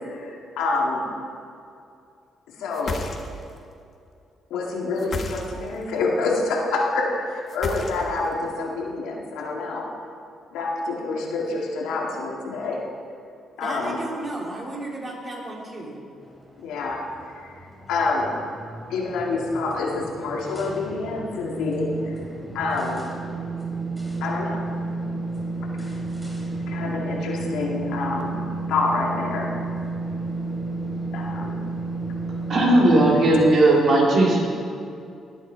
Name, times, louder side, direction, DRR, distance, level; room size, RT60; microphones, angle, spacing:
voice 1, 0.1-1.0 2.6-3.0 4.5-9.9 10.5-12.8 13.6-14.0 16.6-17.0 17.3-17.6 17.9-18.3 18.9-22.1 22.5-23.0 24.2-24.6 26.7-28.3 28.7-29.5 31.1-31.6, left 3 dB, 90° left, -1 dB, 2.0 m, -27 dB
sound 1, 2.7-3.6 5.0-5.8 7.5-8.3, left 3 dB, 45° left, 1.4 m, -32 dB
voice 2, 13.6-16.0, right 2 dB, 30° right, -3 dB, 3.6 m, -33 dB
sound 2, 16.3-33.6, right 3 dB, 5° right, 3.0 m, -32 dB
voice 3, 32.5-34.4, right 1 dB, 60° right, -3 dB, 3.6 m, -17 dB
20.0 x 8.3 x 4.6 m, 2.5 s
cardioid pair, 90°, 0 cm